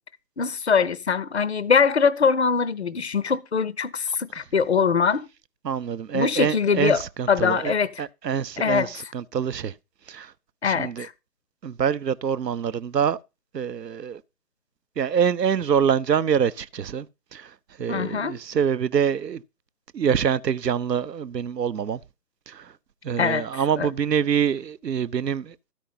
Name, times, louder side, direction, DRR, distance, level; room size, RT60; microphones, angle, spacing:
voice 1, 0.4-5.3 6.1-8.0 8.6-8.9 10.6-11.1 17.9-18.4 23.2-23.9, left 6 dB, 45° left, 0.5 m, -23 dB
voice 2, 5.6-9.7 10.1-10.3 10.6-11.1 11.6-13.2 13.5-14.2 15.0-17.1 17.3-17.5 17.8-19.4 19.9-22.0 22.5-22.7 23.0-25.5, right 7 dB, 80° right, 0.7 m, -25 dB
13.0 x 5.1 x 5.5 m
figure-of-eight pair, 145°, 49 cm